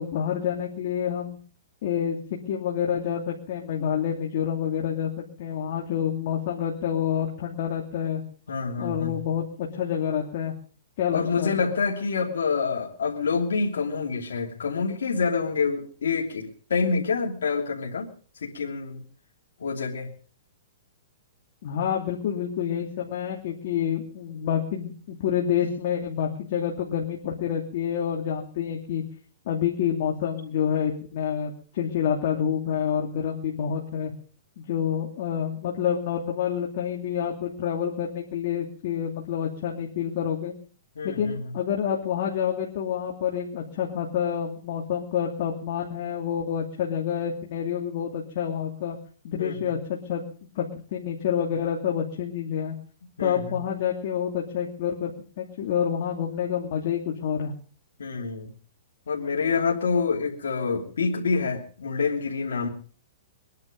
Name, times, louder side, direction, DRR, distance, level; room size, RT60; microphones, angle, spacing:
voice 1, 0.0-1.4 1.8-2.2 2.5-5.1 5.4-8.2 8.8-10.5 11.0-11.5 21.6-29.0 29.5-34.1 34.6-40.5 41.0-49.0 49.2-50.2 50.5-50.6 50.9-52.7 53.2-57.5, left 8 dB, 55° left, -1 dB, 2.7 m, -28 dB
voice 2, 8.5-9.2 11.1-18.1 18.4-19.0 19.6-20.1 41.0-41.5 49.4-49.7 53.2-53.6 58.0-58.5 59.1-62.7, left 5 dB, 85° left, -2 dB, 3.0 m, -27 dB
23.0 x 10.5 x 5.3 m, 0.42 s
hypercardioid pair, 145°, 0 cm